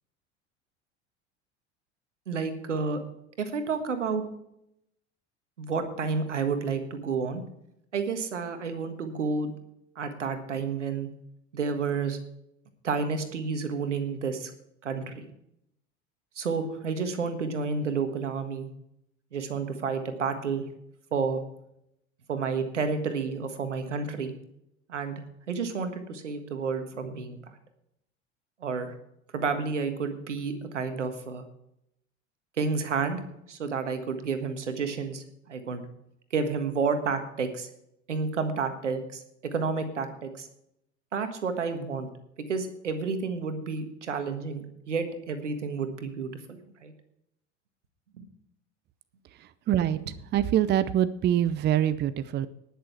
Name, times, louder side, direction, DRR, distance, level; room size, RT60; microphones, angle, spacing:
voice 1, 2.3-3.0 3.4-4.2 5.6-7.4 7.9-9.5 9.9-11.1 11.5-12.2 12.8-14.5 14.8-15.3 16.3-18.7 19.3-20.7 21.1-21.4 22.3-24.3 24.9-27.4 28.6-28.9 29.3-31.4 32.6-33.2 33.5-35.9 36.3-37.7 38.1-40.5 41.1-42.1 42.4-46.9 48.2-48.3, right 5 dB, 80° right, 8 dB, 1.6 m, -30 dB
voice 2, 49.7-50.0 50.3-52.5, right 11 dB, 30° right, 15 dB, 0.6 m, -24 dB
19.0 x 6.8 x 4.6 m, 0.78 s
figure-of-eight pair, 75°, 35 cm